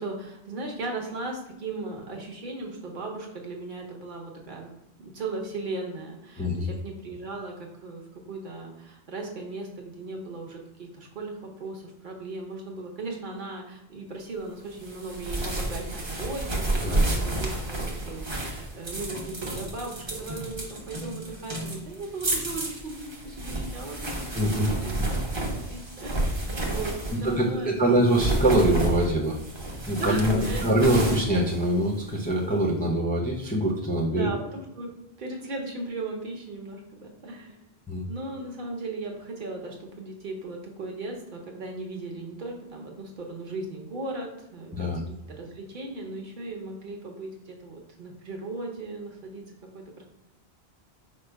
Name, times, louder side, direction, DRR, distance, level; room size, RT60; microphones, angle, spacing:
voice 1, 0.0-4.8 5.0-26.2 26.6-28.2 29.9-30.6 34.1-34.9 35.2-37.6 38.1-50.0, right 2 dB, 50° right, 1 dB, 1.0 m, -37 dB
voice 2, 6.4-6.7 16.8-17.0 24.3-24.7 27.2-34.3 37.9-38.0 44.7-45.0, right 1 dB, 10° left, -3 dB, 0.5 m, -24 dB
sound 1, 14.8-27.4 28.0-32.3, right 1 dB, 30° right, 0.7 m, -31 dB
5.0 x 2.1 x 4.5 m, 0.88 s
omnidirectional pair, 1.1 m